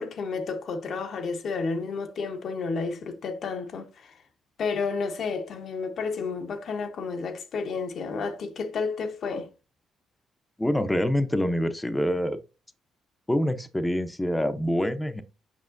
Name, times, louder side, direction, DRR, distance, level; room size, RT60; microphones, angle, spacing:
voice 1, 0.0-4.1 4.6-9.5, left 4 dB, 60° left, 1.0 m, -31 dB
voice 2, 10.6-12.4 13.3-15.2, equal, 10° left, 0.7 m, -26 dB
7.3 x 5.5 x 2.5 m
cardioid pair, 90°, 0 cm